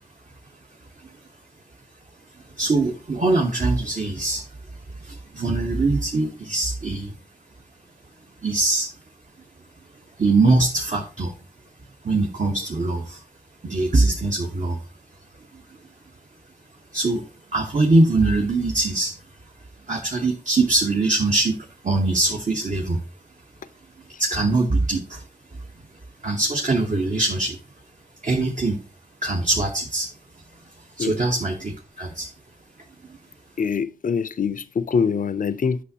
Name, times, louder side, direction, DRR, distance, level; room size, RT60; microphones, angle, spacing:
voice 1, 2.3-4.5 4.9-7.1 8.4-8.9 10.2-11.3 12.0-13.2 13.6-14.8 15.5-15.8 16.9-19.1 19.9-23.0 24.2-25.6 26.2-27.6 28.2-28.8 29.2-30.1 30.8-32.3 33.1-33.2, right 2 dB, 55° right, 1.0 m, -22 dB
voice 2, 33.6-35.8, left 6 dB, 60° left, 0.4 m, -24 dB
8.3 x 6.0 x 2.8 m
wide cardioid pair, 60°, 16 cm